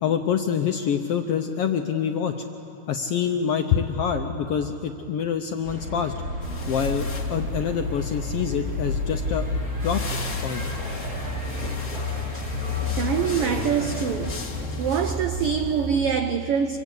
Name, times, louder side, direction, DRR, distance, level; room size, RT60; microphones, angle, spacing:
voice 1, 0.0-2.4 2.9-6.1 6.7-9.5 9.8-10.0 10.4-10.6, left 7 dB, 75° left, 1.4 m, -26 dB
sound 1, 5.6-14.0, left 1 dB, 30° right, 4.4 m, -32 dB
sound 2, 6.4-16.0, left 3 dB, 30° left, 1.6 m, -32 dB
voice 2, 12.9-14.5 14.8-16.8, right 7 dB, 80° right, 1.3 m, -25 dB
25.0 x 23.5 x 8.3 m
omnidirectional pair, 3.5 m